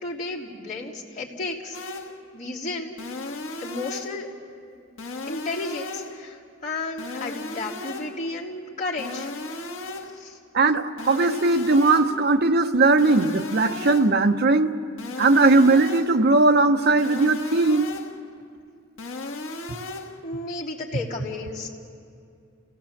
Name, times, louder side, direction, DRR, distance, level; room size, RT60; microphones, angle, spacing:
voice 1, 0.0-1.8 2.3-3.0 3.6-4.3 5.3-9.3 10.1-10.4 20.2-21.7, left 3 dB, 40° left, -5 dB, 3.2 m, -33 dB
sound 1, 1.7-2.3 3.0-4.3 5.0-6.3 7.0-8.3 9.0-10.3 11.0-12.3 13.0-14.3 15.0-16.3 17.0-18.3 19.0-20.3, left 2 dB, 80° left, 1.4 m, -35 dB
voice 2, 10.5-14.7 15.2-17.9, right 3 dB, 55° right, 7 dB, 0.9 m, -19 dB
29.5 x 17.5 x 7.3 m, 2.4 s
head